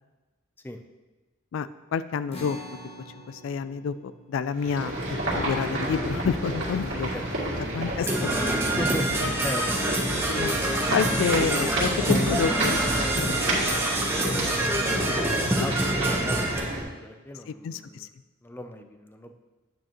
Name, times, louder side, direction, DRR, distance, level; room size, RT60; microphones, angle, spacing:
voice 1, 1.5-2.6 3.3-7.1 7.7-8.6 9.2-9.3 10.3-10.5 10.9-13.3 14.3-15.2 17.6-18.1, left 6 dB, 70° left, 14 dB, 0.3 m, -29 dB
sound 1, 2.3-8.9, equal, 30° left, 0.9 m, -48 dB
sound 2, 4.5-16.8, right 1 dB, 65° right, 2.3 m, -30 dB
voice 2, 6.9-7.2 8.7-9.1 9.4-10.1 15.0-18.1 18.4-19.3, left 1 dB, 10° left, 6 dB, 0.5 m, -37 dB
Percussion / Brass instrument, 8.1-16.6, right 1 dB, 10° right, 1.0 m, -26 dB
9.0 x 8.6 x 3.0 m, 1.2 s
head